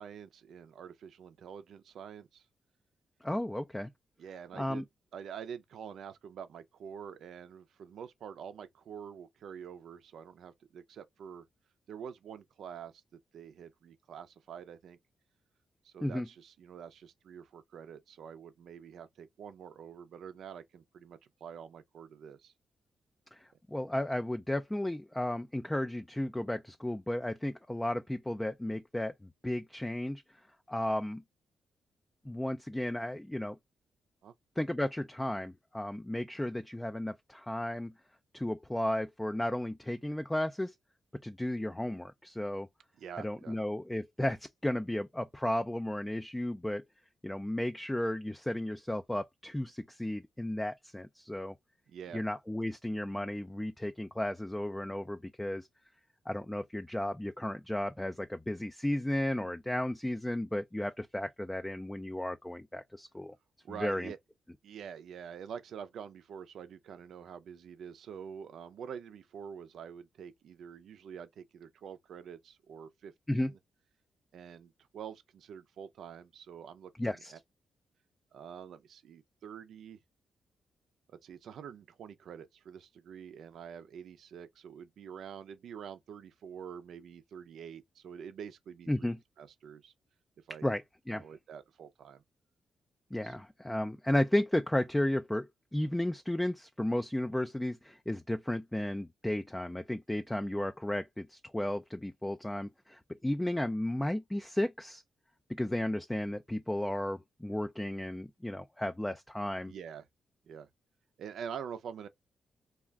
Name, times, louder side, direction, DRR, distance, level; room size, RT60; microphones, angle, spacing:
voice 1, 0.0-2.5 4.2-11.5 11.9-13.0 13.3-15.0 15.8-22.5 34.2-34.3 43.0-43.6 51.9-52.2 63.6-64.2 64.6-73.6 74.3-77.2 78.3-80.0 81.1-89.9 90.5-90.7 91.2-92.2 93.2-93.3 109.6-110.1 110.5-110.7 111.2-112.1, right 7 dB, 80° right, 0.5 m, -46 dB
voice 2, 3.2-3.9 4.6-4.8 16.0-16.3 23.3-23.4 23.7-29.1 29.4-30.2 30.7-31.2 32.3-33.6 34.6-37.9 38.3-40.7 41.2-42.7 43.2-46.8 47.2-51.5 52.1-55.7 56.3-63.3 63.8-64.1 73.3-73.5 77.0-77.3 88.9-89.2 90.6-90.8 91.1-91.3 93.1-105.0 105.5-109.7, left 1 dB, 10° left, 0.3 m, -34 dB
2.4 x 2.1 x 3.4 m
cardioid pair, 90°, 0 cm